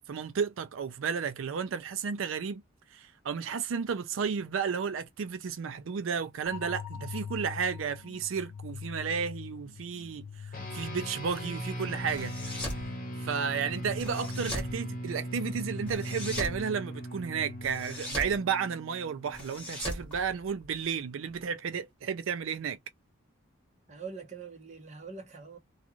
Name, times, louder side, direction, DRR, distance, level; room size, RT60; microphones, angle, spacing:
voice 1, 0.1-2.6 2.9-10.5 10.7-12.3 13.2-22.8, right 6 dB, 85° right, 0.4 m, -33 dB
sound 1, 6.5-18.4, left 7 dB, 85° left, 0.5 m, -44 dB
sound 2, 10.5-20.2, right 1 dB, 45° left, 0.9 m, -39 dB
sound 3, 12.1-12.8 14.0-14.7 15.9-16.6 17.6-18.4 19.3-20.8, left 1 dB, 5° left, 1.3 m, -38 dB
voice 2, 23.9-25.6, right 5 dB, 35° right, 1.0 m, -43 dB
2.5 x 2.4 x 2.9 m
head